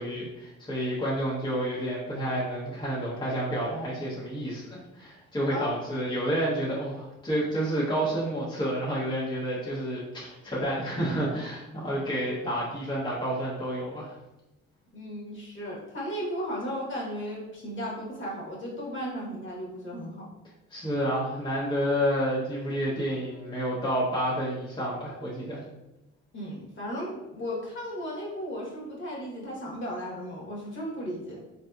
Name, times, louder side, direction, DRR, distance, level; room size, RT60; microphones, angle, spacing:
voice 1, 0.0-14.1 20.7-25.6, equal, 15° left, -7 dB, 0.8 m, -30 dB
voice 2, 5.5-5.8 14.9-20.3 26.3-31.4, equal, 40° left, -4 dB, 1.3 m, -35 dB
4.0 x 2.7 x 2.3 m, 0.99 s
cardioid pair, 90°, 30 cm